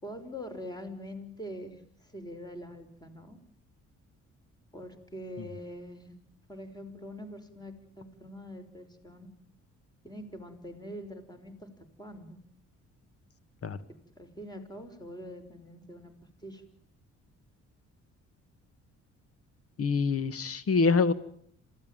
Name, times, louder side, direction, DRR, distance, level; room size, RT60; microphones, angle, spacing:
voice 1, 0.0-3.4 4.7-6.1 6.5-9.3 10.0-11.7 12.0-12.4 14.2-16.1 16.4-16.6, equal, 15° left, 7 dB, 5.6 m, -44 dB
voice 2, 19.8-21.1, left 4 dB, 50° left, 14 dB, 1.9 m, -25 dB
27.0 x 17.0 x 9.2 m, 0.64 s
cardioid pair, 90°, 30 cm